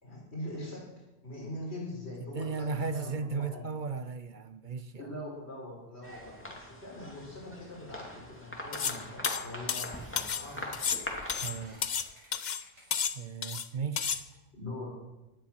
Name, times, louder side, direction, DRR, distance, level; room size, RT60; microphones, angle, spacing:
voice 1, 0.0-3.6 5.0-10.6 14.5-15.0, left 1 dB, 60° left, 5.0 m, -42 dB
voice 2, 2.3-5.0 11.4-11.8 13.1-14.2, right 5 dB, 50° right, 0.7 m, -35 dB
sound 1, 6.0-11.7, equal, 10° left, 2.5 m, -42 dB
sound 2, 8.3-8.4 9.0-9.2 9.6-13.2 13.7-14.4, equal, 65° right, 7.5 m, -56 dB
sound 3, 8.7-9.0 9.2-10.4 10.7-12.1 12.3-12.6 12.9-13.7 14.0-14.2, left 7 dB, 45° left, 0.7 m, -32 dB
17.0 x 11.5 x 6.0 m
omnidirectional pair, 1.2 m